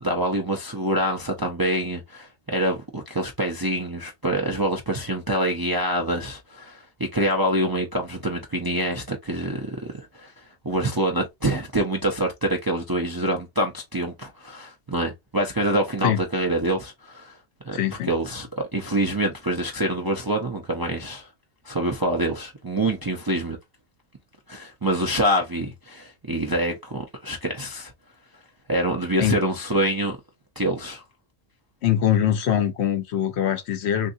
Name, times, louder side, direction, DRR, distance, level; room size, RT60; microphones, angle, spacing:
voice 1, 0.0-9.8 10.1-10.3 10.6-17.3 17.6-17.8 18.0-21.3 21.6-23.6 24.5-27.9 28.7-30.2 30.6-31.0, right 1 dB, 30° right, 0.4 m, -26 dB
voice 2, 17.7-18.1 29.2-29.4 31.8-34.1, left 10 dB, 70° left, 0.9 m, -22 dB
3.6 x 2.7 x 2.5 m
omnidirectional pair, 1.2 m